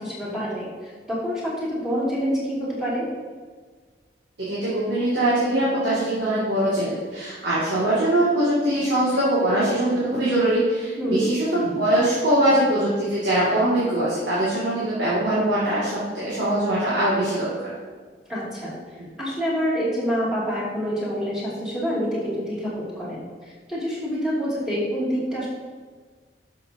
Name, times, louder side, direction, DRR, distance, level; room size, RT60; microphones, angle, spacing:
voice 1, 0.0-3.0 11.0-11.3 18.3-18.8 19.2-25.5, equal, 5° right, -8 dB, 2.6 m, -27 dB
voice 2, 4.4-17.7 19.0-19.1, right 1 dB, 85° right, -9 dB, 2.4 m, -22 dB
12.0 x 6.4 x 2.9 m, 1.5 s
head